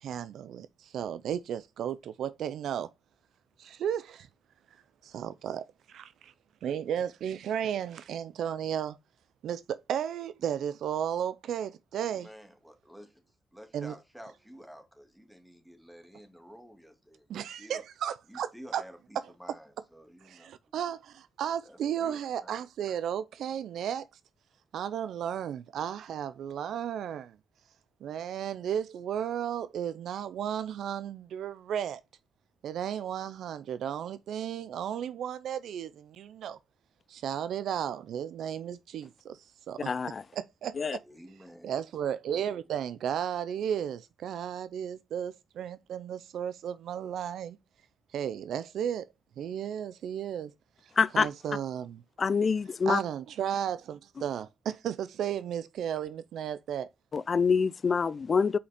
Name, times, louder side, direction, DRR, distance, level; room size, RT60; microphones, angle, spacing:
voice 1, 0.0-2.9 3.6-4.3 5.0-6.3 6.6-9.0 9.4-12.3 13.7-13.9 17.3-18.8 20.2-24.1 24.7-27.3 28.0-32.0 32.6-36.6 37.1-39.9 40.3-41.0 41.6-47.6 48.1-49.1 49.4-50.5 51.1-52.0 52.9-56.9, right 9 dB, 80° right, 0.5 m, -34 dB
voice 2, 12.0-13.2 13.5-17.8 18.3-20.8 21.7-22.5 40.8-41.7, equal, 5° right, 1.9 m, -51 dB
voice 3, 39.9-40.2 40.8-41.0 51.0-51.3 52.2-53.0 57.1-58.6, left 5 dB, 45° left, 0.4 m, -26 dB
5.6 x 5.0 x 4.1 m
cardioid pair, 85°, 0 cm